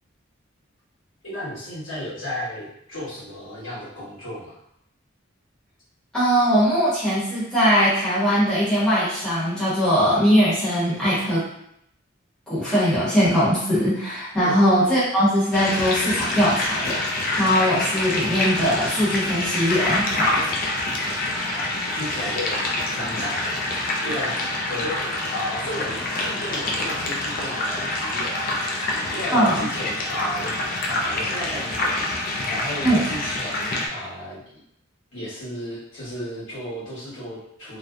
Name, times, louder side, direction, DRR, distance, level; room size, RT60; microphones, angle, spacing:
voice 1, 1.2-4.6 14.4-14.6 21.4-22.6 22.9-30.5 30.8-34.6 35.1-37.8, left 1 dB, 70° left, -9 dB, 1.3 m, -34 dB
voice 2, 6.1-11.4 12.5-20.3 29.3-29.7 32.8-33.0, equal, 5° left, -11 dB, 0.8 m, -20 dB
sound 1, 15.5-33.9, left 2 dB, 45° left, 0.4 m, -26 dB
2.6 x 2.0 x 2.3 m, 0.74 s
head